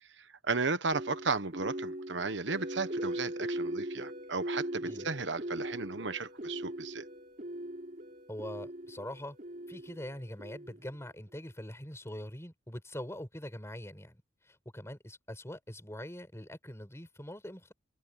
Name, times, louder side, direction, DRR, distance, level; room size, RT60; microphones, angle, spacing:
voice 1, 0.4-7.0, right 4 dB, 65° right, 1.2 m, -34 dB
sound 1, 0.9-11.0, right 1 dB, 45° right, 3.7 m, -40 dB
voice 2, 8.3-9.4 9.7-17.7, left 1 dB, 15° left, 6.9 m, -43 dB
head